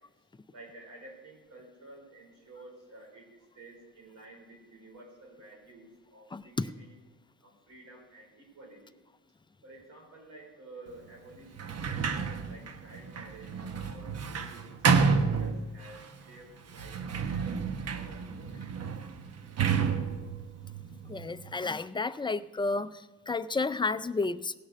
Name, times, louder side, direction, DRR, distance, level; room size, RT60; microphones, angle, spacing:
voice 1, 0.5-7.0 7.4-9.0 9.6-18.6, right 2 dB, 75° right, -1 dB, 4.7 m, -52 dB
voice 2, 6.3-6.7 21.1-24.5, left 3 dB, 15° left, 13 dB, 0.5 m, -31 dB
Sliding door, 11.5-16.1 16.7-21.5, right 5 dB, 55° right, 1.1 m, -30 dB
17.0 x 6.3 x 6.2 m, 1.2 s
cardioid pair, 90°, 30 cm